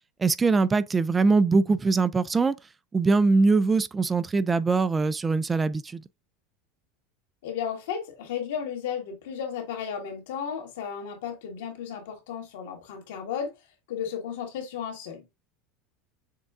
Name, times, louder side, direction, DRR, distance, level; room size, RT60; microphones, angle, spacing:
voice 1, 0.2-2.6 2.9-6.0, right 4 dB, 20° right, 0.3 m, -22 dB
voice 2, 7.4-13.5 13.9-15.4, left 8 dB, 80° left, 1.7 m, -34 dB
6.4 x 2.3 x 3.6 m
supercardioid pair, 115°, 0 cm